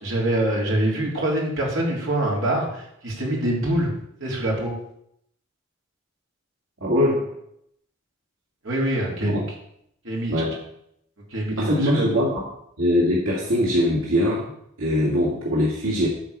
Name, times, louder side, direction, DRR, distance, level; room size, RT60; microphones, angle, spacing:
voice 1, 0.0-3.9 4.2-4.7 8.6-9.4 10.0-10.4 11.3-12.3, right 1 dB, 70° right, -3 dB, 3.7 m, -25 dB
voice 2, 6.8-7.2 9.2-9.4 10.3-10.5 11.6-12.4 12.8-14.5 14.8-16.1, left 1 dB, 90° right, -5 dB, 2.4 m, -22 dB
13.5 x 4.8 x 6.7 m, 0.74 s
head